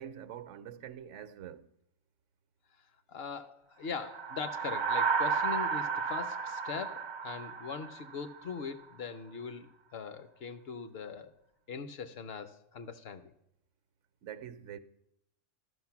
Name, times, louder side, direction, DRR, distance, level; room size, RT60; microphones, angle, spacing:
voice 1, 0.0-1.7 14.2-14.8, right 9 dB, 75° right, 0.9 m, -45 dB
voice 2, 3.1-11.3 11.7-13.3, left 6 dB, 60° left, 0.8 m, -41 dB
sound 1, 4.0-8.5, right 5 dB, 45° right, 0.3 m, -33 dB
13.0 x 6.1 x 5.8 m
omnidirectional pair, 1.3 m